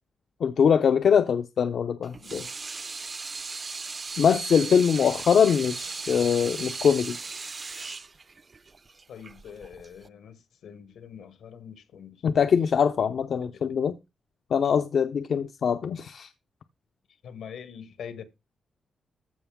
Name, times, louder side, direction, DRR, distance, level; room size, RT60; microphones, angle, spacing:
voice 1, 0.4-2.5 4.2-7.2 12.2-13.9 14.5-16.3, left 7 dB, 70° left, 0.6 m, -23 dB
Water tap faucet / Sink (filling or washing), 2.0-10.1, right 4 dB, 40° right, 0.5 m, -37 dB
voice 2, 9.1-12.2 13.5-13.7 17.2-18.2, left 7 dB, 85° left, 1.4 m, -44 dB
14.5 x 5.3 x 3.6 m
cardioid pair, 80°, 0 cm